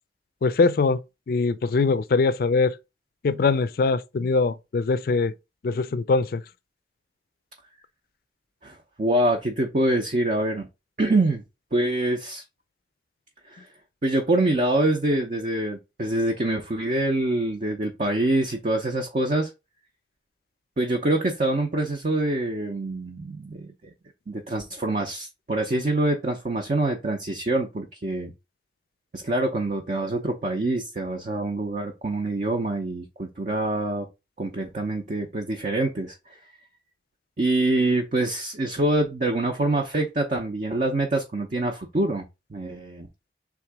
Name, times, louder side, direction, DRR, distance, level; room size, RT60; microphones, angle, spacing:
voice 1, 0.4-1.0 1.3-2.7 3.2-5.3 5.6-6.4, left 4 dB, 55° left, 0.4 m, -22 dB
voice 2, 8.6-10.7 11.0-11.4 11.7-12.4 13.5-13.7 14.0-19.5 20.8-23.7 24.3-28.3 29.1-34.1 34.4-36.2 37.4-43.1, right 2 dB, 45° right, 0.6 m, -25 dB
3.6 x 2.9 x 4.6 m
head